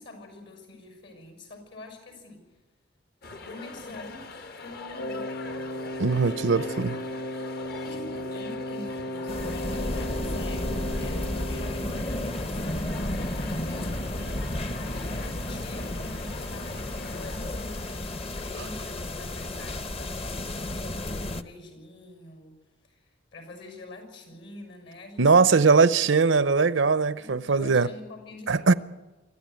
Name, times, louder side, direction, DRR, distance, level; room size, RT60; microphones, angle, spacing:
voice 1, 0.0-2.4 3.4-4.3 4.6-6.7 7.5-13.9 14.7-22.6 22.8-25.6 27.2-28.8, left 2 dB, 70° left, 6.4 m, -45 dB
sound 1, 3.2-18.8, left 3 dB, 55° left, 1.2 m, -43 dB
Wind instrument woodwind instrument, 4.9-12.3, left 1 dB, 90° left, 1.8 m, -35 dB
voice 2, 6.0-6.9 25.2-27.9 28.5-28.7, right 4 dB, 90° right, 0.7 m, -20 dB
sound 2, 9.3-21.4, left 1 dB, 30° left, 0.8 m, -32 dB
25.0 x 14.0 x 9.3 m
head